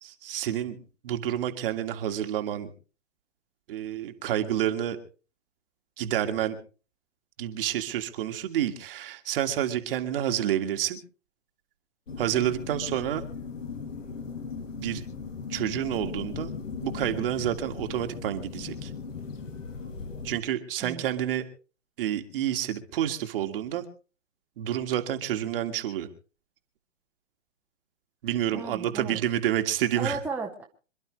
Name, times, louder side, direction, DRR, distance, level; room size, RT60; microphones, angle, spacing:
voice 1, 0.0-0.8 1.0-2.7 3.7-5.0 6.0-6.6 7.4-11.0 12.2-13.2 14.8-15.0 15.5-16.5 16.8-18.9 20.2-21.4 22.0-23.8 24.6-26.1 28.2-30.2, right 11 dB, 45° right, 6 dB, 2.0 m, -29 dB
sound 1, 12.1-20.4, left 5 dB, 75° left, 2.7 m, -38 dB
voice 2, 28.5-29.2 30.0-30.6, right 4 dB, 5° right, -1 dB, 1.4 m, -34 dB
26.5 x 11.5 x 3.2 m, 0.36 s
hypercardioid pair, 135°, 38 cm